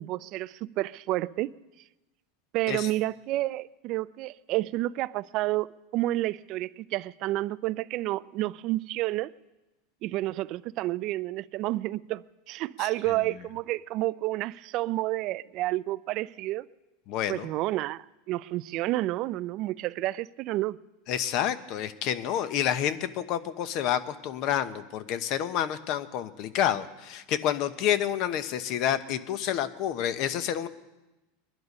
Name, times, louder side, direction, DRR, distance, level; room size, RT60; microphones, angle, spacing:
voice 1, 0.0-1.5 2.5-5.7 5.9-9.3 10.0-16.7 17.3-20.8, right 17 dB, 50° right, 0.4 m, -30 dB
voice 2, 12.8-13.2 17.1-17.5 21.1-30.7, left 10 dB, 50° left, 1.0 m, -29 dB
21.5 x 11.0 x 5.4 m
supercardioid pair, 120°, 0 cm